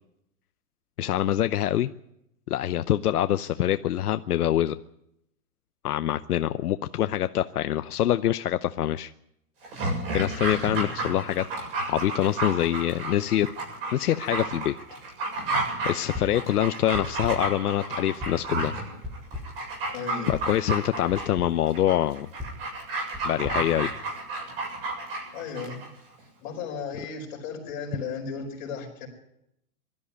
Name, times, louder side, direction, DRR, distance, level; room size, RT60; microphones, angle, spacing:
voice 1, 1.0-1.9 2.5-4.7 5.8-9.1 10.1-11.4 11.9-13.5 13.9-14.7 15.8-18.8 20.3-22.3 23.2-23.9, left 12 dB, 75° left, 11 dB, 0.8 m, -25 dB
Dog, 9.6-25.9 26.2-26.3, right 2 dB, 40° right, 7.3 m, -32 dB
sound 1, 16.1-16.5 16.9-17.6 18.2-18.6 19.0-19.7 20.3-20.6 21.1-21.6 22.4-24.5, left 2 dB, ahead, 0.8 m, -39 dB
voice 2, 19.9-20.4 25.3-25.9 26.4-29.1, left 5 dB, 30° left, 0 dB, 4.9 m, -35 dB
21.0 x 13.0 x 9.6 m, 0.82 s
hypercardioid pair, 175°, 45 cm